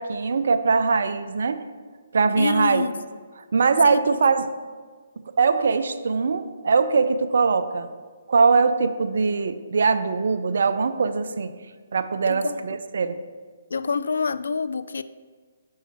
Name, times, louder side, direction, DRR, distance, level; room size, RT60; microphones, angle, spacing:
voice 1, 0.0-1.6 2.1-2.8 3.5-4.5 5.3-7.9 8.3-11.5 11.9-13.2, right 4 dB, 65° right, 10 dB, 0.5 m, -21 dB
voice 2, 2.3-3.0 3.8-4.0 12.2-12.6 13.7-15.0, left 4 dB, 75° left, 14 dB, 0.3 m, -26 dB
7.1 x 5.6 x 4.3 m, 1.5 s
figure-of-eight pair, 140°, 0 cm